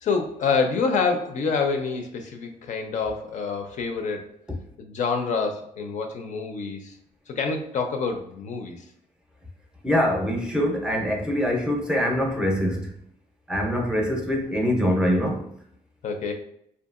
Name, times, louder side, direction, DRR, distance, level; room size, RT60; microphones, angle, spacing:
voice 1, 0.0-4.3 4.8-7.0 7.3-8.8 16.0-16.3, left 5 dB, 60° left, 4 dB, 0.4 m, -27 dB
voice 2, 9.8-12.9 13.5-15.4, equal, 5° right, 0 dB, 0.6 m, -24 dB
2.7 x 2.3 x 2.4 m, 0.72 s
cardioid pair, 95°, 14 cm